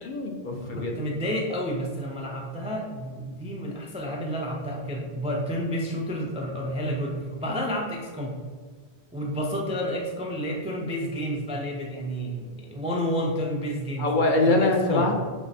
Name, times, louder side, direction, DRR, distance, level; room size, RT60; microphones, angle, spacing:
voice 1, 0.0-0.9 14.0-15.2, left 2 dB, 55° left, 1 dB, 0.6 m, -23 dB
voice 2, 0.7-8.4 9.1-14.1 14.4-15.1, equal, 10° right, -2 dB, 0.3 m, -30 dB
6.1 x 2.0 x 4.0 m, 1.5 s
omnidirectional pair, 1.1 m